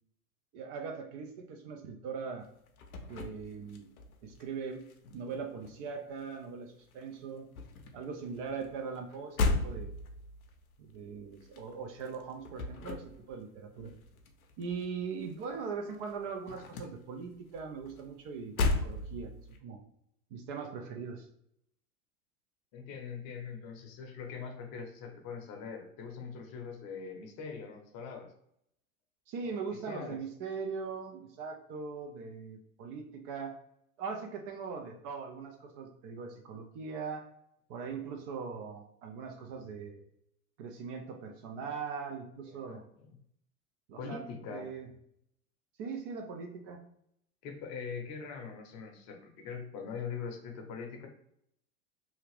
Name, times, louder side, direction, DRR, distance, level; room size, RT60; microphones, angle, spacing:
voice 1, 0.5-2.5 3.1-3.9 4.2-4.8 5.1-7.5 7.9-9.4 9.6-10.0 10.8-13.9 14.6-19.3 19.6-19.8 20.3-21.3 29.3-33.6 34.0-37.2 37.7-40.0 40.6-42.8 43.9-44.9 45.8-46.8, right 5 dB, 40° right, 4 dB, 0.5 m, -40 dB
sound 1, 2.4-4.4 4.7-6.6 6.9-15.6 15.9-19.6, left 3 dB, 75° left, 0.6 m, -37 dB
voice 2, 22.7-28.3 29.7-30.2 42.4-43.2 44.0-44.6 47.4-51.1, left 6 dB, 40° left, 3 dB, 0.7 m, -42 dB
2.8 x 2.4 x 3.2 m, 0.73 s
hypercardioid pair, 90°, 43 cm